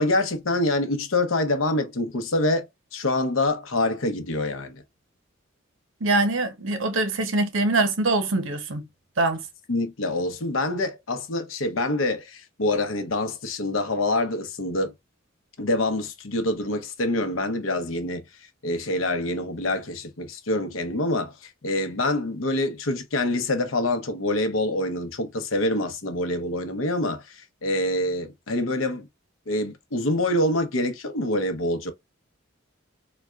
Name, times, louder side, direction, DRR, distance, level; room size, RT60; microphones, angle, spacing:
voice 1, 0.0-2.6 2.9-4.8 9.7-14.9 15.6-18.2 18.6-29.1 29.5-31.9, left 2 dB, 85° left, 0.8 m, -26 dB
voice 2, 6.0-8.9 9.2-9.4, right 2 dB, 80° right, 0.7 m, -23 dB
4.0 x 2.2 x 2.3 m
head